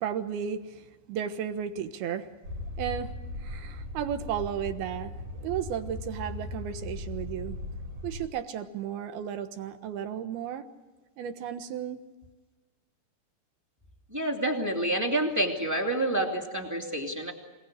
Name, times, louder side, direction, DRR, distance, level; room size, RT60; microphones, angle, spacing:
voice 1, 0.0-2.3 2.8-7.6 8.0-10.7 11.2-12.0, right 9 dB, 75° right, 8 dB, 3.2 m, -34 dB
sound 1, 2.4-8.3, left 2 dB, 55° right, 5.0 m, -38 dB
voice 2, 14.1-17.3, right 1 dB, 5° right, 2 dB, 1.7 m, -28 dB
26.5 x 19.0 x 8.2 m, 1.2 s
omnidirectional pair, 4.7 m